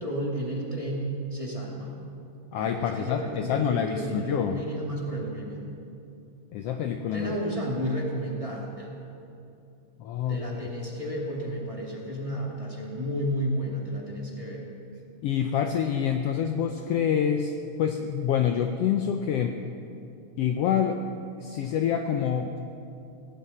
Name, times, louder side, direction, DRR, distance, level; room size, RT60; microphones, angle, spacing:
voice 1, 0.0-2.0 2.5-5.7 7.1-8.9 10.3-14.6, equal, 10° right, -3 dB, 2.0 m, -32 dB
voice 2, 2.5-4.6 6.5-7.4 10.0-10.4 15.2-17.5 17.8-19.6 20.4-21.0 21.4-22.6, left 8 dB, 75° left, 5 dB, 1.5 m, -26 dB
18.5 x 17.0 x 4.3 m, 2.6 s
omnidirectional pair, 3.4 m